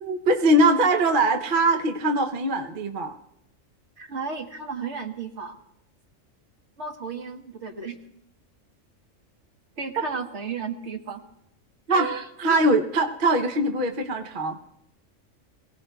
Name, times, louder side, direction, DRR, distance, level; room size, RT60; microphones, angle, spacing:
voice 1, 0.0-3.1 11.9-12.1 12.4-14.6, right 1 dB, 45° right, 5 dB, 0.9 m, -22 dB
voice 2, 4.0-5.6 6.8-8.0 9.8-11.2 11.9-12.5, right 5 dB, 60° right, 4 dB, 1.5 m, -33 dB
23.5 x 17.0 x 2.3 m, 0.78 s
omnidirectional pair, 1.4 m